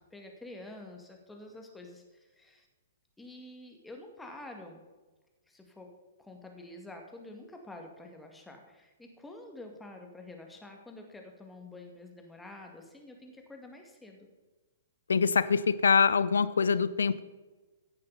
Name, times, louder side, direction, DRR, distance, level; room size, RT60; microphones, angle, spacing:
voice 1, 0.1-2.7 3.2-4.9 5.5-5.9 6.2-14.3, left 2 dB, 5° left, 2 dB, 2.2 m, -48 dB
voice 2, 15.1-17.2, left 5 dB, 65° left, 16 dB, 0.7 m, -24 dB
15.0 x 10.5 x 4.2 m, 1.2 s
figure-of-eight pair, 115°, 0 cm